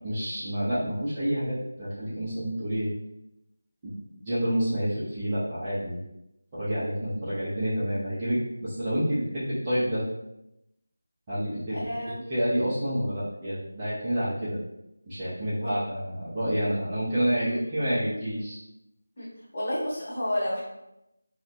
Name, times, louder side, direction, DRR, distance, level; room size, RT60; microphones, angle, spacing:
voice 1, 0.0-2.9 3.8-6.0 6.5-10.0 11.3-11.8 12.3-14.6 15.1-18.6, equal, 15° right, -12 dB, 0.4 m, -28 dB
voice 2, 11.7-12.1 15.6-15.7 17.4-17.6 19.2-19.3 19.5-20.6, equal, 25° left, -10 dB, 0.9 m, -30 dB
3.2 x 2.0 x 2.6 m, 0.87 s
figure-of-eight pair, 175°, 0 cm